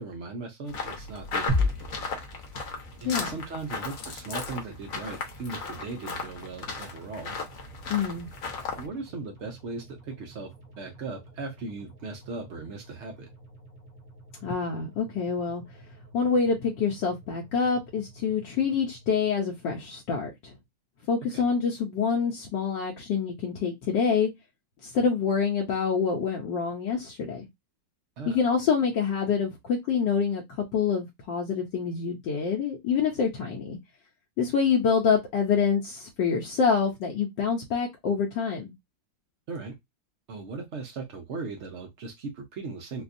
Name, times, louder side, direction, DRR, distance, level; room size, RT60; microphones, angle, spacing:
voice 1, 0.0-2.0 3.0-7.4 8.8-10.5 10.8-13.3 21.3-21.4 28.2-28.4 39.5-39.7 40.3-43.0, right 3 dB, 70° right, 0.6 m, -38 dB
sound 1, 0.7-8.9, left 4 dB, 55° left, 1.1 m, -36 dB
sound 2, 1.5-19.7, left 2 dB, 35° right, 1.0 m, -39 dB
voice 2, 7.9-8.3 14.4-15.6 16.1-20.5 21.1-24.3 24.8-27.5 28.3-30.4 30.7-33.8 34.4-38.7, left 6 dB, 80° left, 1.4 m, -26 dB
4.1 x 2.2 x 2.5 m
omnidirectional pair, 2.0 m